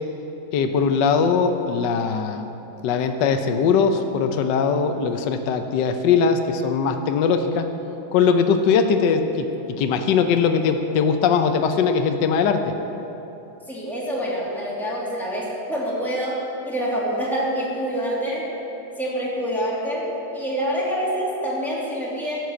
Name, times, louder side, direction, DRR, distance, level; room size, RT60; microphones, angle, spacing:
voice 1, 0.5-2.5 2.8-7.7 8.1-9.5 9.8-12.8, left 6 dB, 70° left, 6 dB, 1.3 m, -20 dB
voice 2, 13.7-18.5 19.0-22.4, equal, ahead, -7 dB, 2.8 m, -26 dB
12.5 x 7.8 x 8.2 m, 3.0 s
omnidirectional pair, 2.2 m